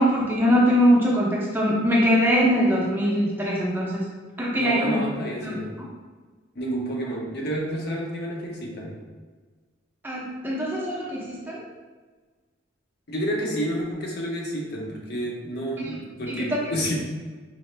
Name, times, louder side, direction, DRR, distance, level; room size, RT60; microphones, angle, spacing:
voice 1, 0.0-4.0 4.4-5.0 5.4-5.6 10.0-11.6 15.8-15.9 16.4-16.5, equal, 10° right, -5 dB, 0.5 m, -22 dB
voice 2, 4.5-5.8 6.6-9.0 13.1-17.0, equal, 55° left, -1 dB, 0.7 m, -30 dB
4.1 x 2.4 x 3.1 m, 1.4 s
head